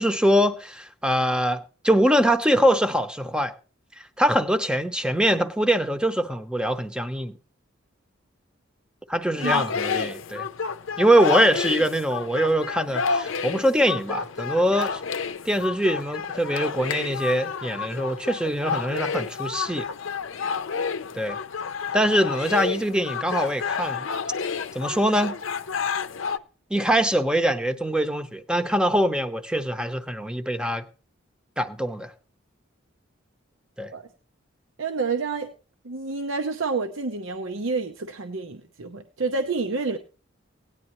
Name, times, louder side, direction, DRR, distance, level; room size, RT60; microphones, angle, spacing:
voice 1, 0.0-3.5 4.0-7.3 9.1-10.5 11.0-15.0 15.4-19.9 21.1-21.4 21.9-24.1 24.7-25.4 26.7-30.8 31.6-32.1 33.8-33.9, equal, 5° right, 0.8 m, -23 dB
sound 1, 9.4-26.4, left 6 dB, 75° left, 0.6 m, -30 dB
voice 2, 34.8-35.5 35.8-40.0, right 4 dB, 75° right, 0.8 m, -28 dB
17.5 x 9.8 x 3.0 m
head